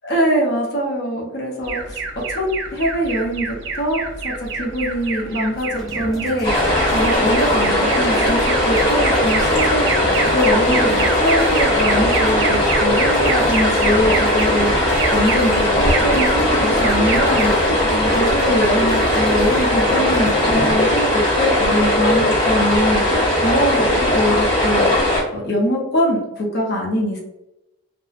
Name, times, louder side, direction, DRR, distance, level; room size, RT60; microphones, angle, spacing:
voice 1, 0.0-2.0 2.3-24.9 25.3-27.2, equal, 55° left, -2 dB, 0.6 m, -23 dB
Alarm, 1.6-19.3, right 4 dB, 65° right, 0.4 m, -28 dB
sound 1, 5.7-20.9, left 1 dB, ahead, 0.3 m, -34 dB
sound 2, 6.4-25.2, left 1 dB, 25° left, 0.8 m, -18 dB
2.6 x 2.0 x 2.4 m, 0.92 s
head